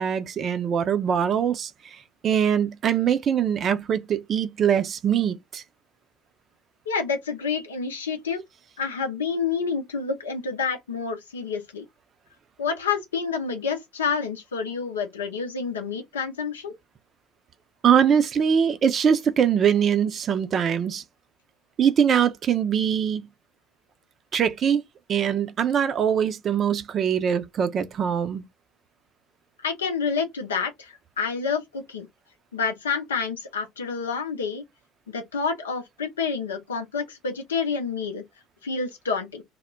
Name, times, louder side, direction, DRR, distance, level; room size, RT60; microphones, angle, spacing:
voice 1, 0.0-1.7 2.2-5.6 17.8-21.0 21.8-23.3 24.3-24.8 25.1-28.4, right 8 dB, 40° right, 0.5 m, -22 dB
voice 2, 6.9-8.4 8.8-11.8 12.6-16.7 29.6-32.1 32.5-34.6 35.1-38.2 38.6-39.4, left 5 dB, 80° left, 0.6 m, -28 dB
2.2 x 2.1 x 3.7 m
figure-of-eight pair, 65°, 0 cm